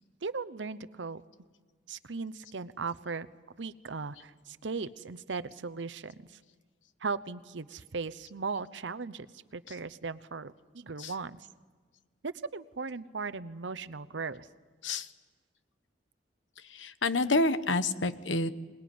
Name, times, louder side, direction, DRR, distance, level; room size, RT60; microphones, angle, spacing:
voice 1, 0.2-1.2 1.9-3.3 3.6-6.4 7.0-9.3 9.5-11.5 12.2-14.5, right 4 dB, 75° right, 13 dB, 0.9 m, -37 dB
voice 2, 16.6-18.5, left 2 dB, 90° left, 12 dB, 1.2 m, -29 dB
26.0 x 20.0 x 9.5 m, 1.4 s
head